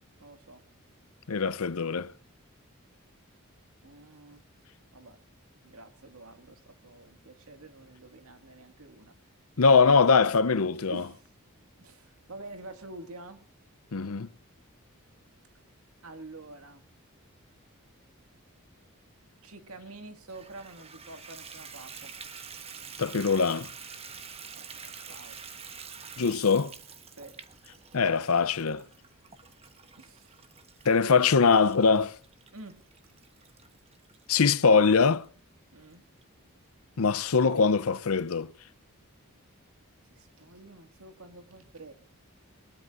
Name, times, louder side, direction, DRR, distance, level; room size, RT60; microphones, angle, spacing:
voice 1, 0.2-0.6 3.8-4.4 4.9-5.2 5.6-9.1 10.9-11.3 11.8-13.4 16.0-16.8 19.4-22.1 24.5-25.4 27.2-27.4 30.0-30.4 32.5-32.8 35.7-36.0 40.1-41.9, right 2 dB, 80° right, 2.1 m, -48 dB
voice 2, 1.3-2.1 9.6-11.0 13.9-14.3 23.0-23.7 26.2-26.7 27.9-28.8 30.8-32.2 34.3-35.2 37.0-38.5, left 5 dB, 80° left, 0.7 m, -22 dB
Water tap faucet / Bathtub (filling or washing), 20.3-34.7 35.2-35.3 35.8-35.9 36.2-36.3, right 6 dB, 30° right, 1.3 m, -47 dB
22.5 x 21.0 x 2.6 m
head